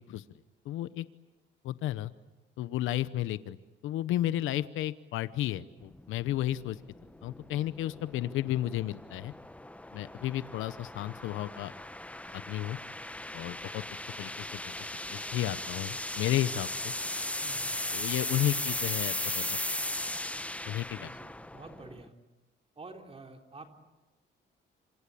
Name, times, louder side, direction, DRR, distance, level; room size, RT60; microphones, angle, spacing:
voice 1, 0.7-1.1 1.6-2.1 2.6-3.6 3.8-6.8 7.2-9.3 9.9-11.7 12.3-12.8 13.3-13.8 14.2-14.7 15.1-16.9 17.9-19.6 20.7-21.1, left 13 dB, 90° left, 14 dB, 0.9 m, -32 dB
sound 1, 5.8-22.1, left 1 dB, 5° left, 0.8 m, -37 dB
voice 2, 17.4-17.8 20.8-22.1 22.8-23.7, right 3 dB, 30° right, 3 dB, 3.9 m, -49 dB
27.0 x 26.0 x 8.5 m, 1.1 s
cardioid pair, 90°, 20 cm